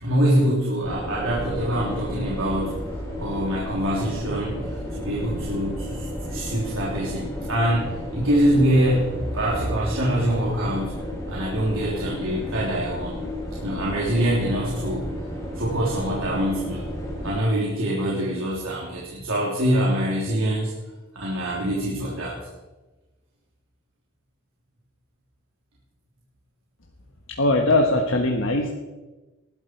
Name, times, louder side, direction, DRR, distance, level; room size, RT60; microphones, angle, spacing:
voice 1, 0.0-2.8 3.1-4.6 4.9-11.0 11.3-13.2 13.6-15.1 15.5-16.9 17.2-20.7 21.1-22.3, right 1 dB, 80° right, -5 dB, 3.4 m, -24 dB
sound 1, 0.8-17.4, equal, 15° left, 3.5 m, -33 dB
voice 2, 27.4-28.7, left 2 dB, 70° left, 2 dB, 1.4 m, -20 dB
20.0 x 13.0 x 4.7 m, 1.1 s
head